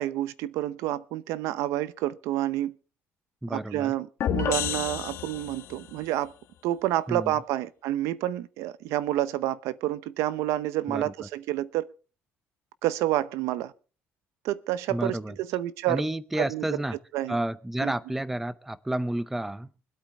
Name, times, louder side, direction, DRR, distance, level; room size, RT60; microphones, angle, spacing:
voice 1, 0.0-2.8 3.5-6.3 6.6-11.9 12.8-13.7 14.4-16.0 16.4-16.6 17.1-17.3 17.8-17.9, right 14 dB, 90° right, 0.7 m, -29 dB
voice 2, 3.4-4.0 7.1-7.4 10.9-11.3 14.9-15.4 15.9-17.0 17.3-19.7, right 1 dB, 5° right, 0.6 m, -31 dB
sound 1, 4.2-5.9, left 10 dB, 60° left, 1.3 m, -30 dB
25.0 x 8.4 x 3.5 m
cardioid pair, 150°, 5 cm